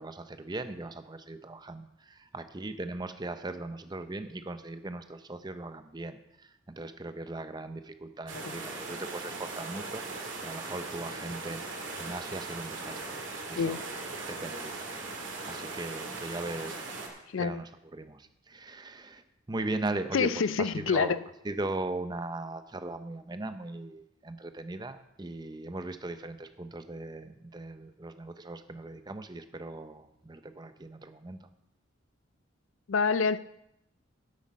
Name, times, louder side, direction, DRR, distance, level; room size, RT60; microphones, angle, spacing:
voice 1, 0.0-10.0 10.4-13.2 13.5-13.8 14.3-21.2 21.4-31.5, right 2 dB, 20° right, 9 dB, 0.6 m, -39 dB
sound 1, 8.3-17.1, right 3 dB, 70° right, 2.2 m, -39 dB
voice 2, 20.1-21.2 32.9-33.4, left 5 dB, 80° left, 16 dB, 0.5 m, -27 dB
9.7 x 8.3 x 5.3 m, 0.83 s
head